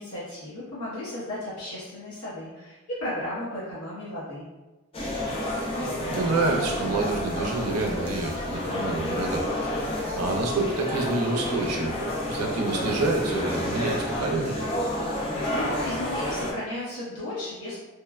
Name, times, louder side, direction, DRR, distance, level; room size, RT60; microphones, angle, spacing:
voice 1, 0.0-4.5 15.5-17.8, left 1 dB, 80° left, -9 dB, 0.9 m, -34 dB
sound 1, 4.9-16.5, left 1 dB, 25° left, 0.4 m, -29 dB
voice 2, 6.1-9.7 10.1-11.9 12.3-14.6, right 2 dB, 80° right, 1 dB, 0.5 m, -28 dB
3.1 x 2.1 x 2.3 m, 1.1 s
head